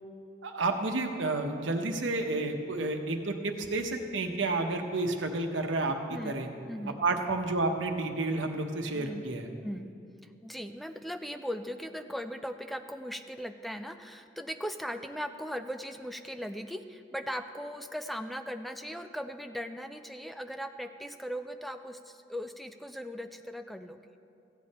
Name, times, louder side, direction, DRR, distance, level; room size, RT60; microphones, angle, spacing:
voice 1, 0.4-6.5 7.0-9.5, right 2 dB, 85° right, 5 dB, 1.0 m, -30 dB
voice 2, 8.9-9.3 9.6-9.9 10.2-24.0, equal, ahead, 8 dB, 0.4 m, -38 dB
15.0 x 8.5 x 4.2 m, 2.5 s
head